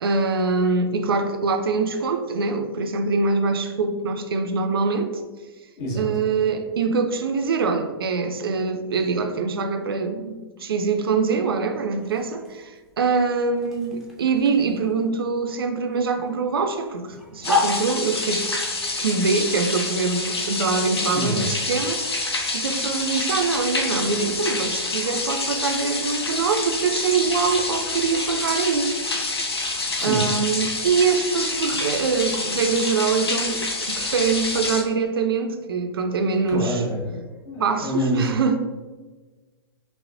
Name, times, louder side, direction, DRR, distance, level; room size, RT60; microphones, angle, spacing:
voice 1, 0.0-5.1 6.0-18.5 19.0-22.0 22.5-28.9 30.0-36.8 37.6-38.6, right 4 dB, 65° right, 6 dB, 0.4 m, -24 dB
voice 2, 5.8-6.1 21.1-21.5 30.0-30.2 36.5-37.2 37.4-38.3, equal, 40° left, -3 dB, 1.1 m, -26 dB
sound 1, 12.0-28.8, left 2 dB, ahead, 0.6 m, -36 dB
sound 2, 17.4-34.8, left 2 dB, 75° left, 0.6 m, -27 dB
5.5 x 2.0 x 2.5 m, 1.3 s
figure-of-eight pair, 105°, 13 cm